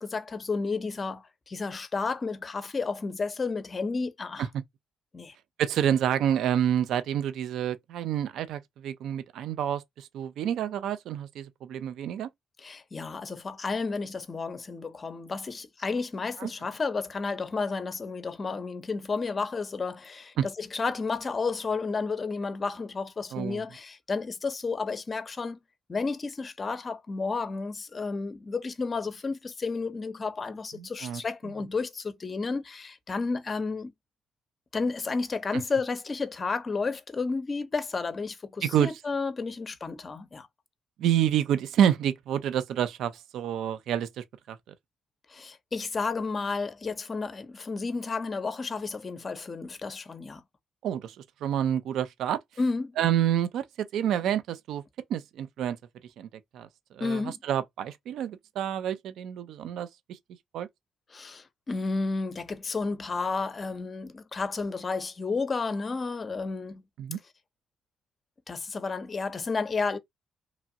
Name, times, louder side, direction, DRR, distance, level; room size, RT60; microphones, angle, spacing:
voice 1, 0.0-4.5 5.1-5.3 12.6-25.6 25.9-33.9 34.7-40.5 45.3-50.4 52.6-53.0 57.0-57.4 61.1-66.8 68.5-70.0, left 4 dB, 35° left, 0.5 m, -32 dB
voice 2, 5.6-12.3 16.4-16.5 20.4-20.5 23.3-23.6 30.8-31.2 38.6-38.9 41.0-44.6 50.8-52.4 53.0-54.8 55.1-55.8 56.2-56.3 56.5-60.2 60.5-60.7 67.0-67.2, right 10 dB, 80° right, 0.3 m, -28 dB
2.9 x 2.4 x 2.6 m
cardioid pair, 90°, 0 cm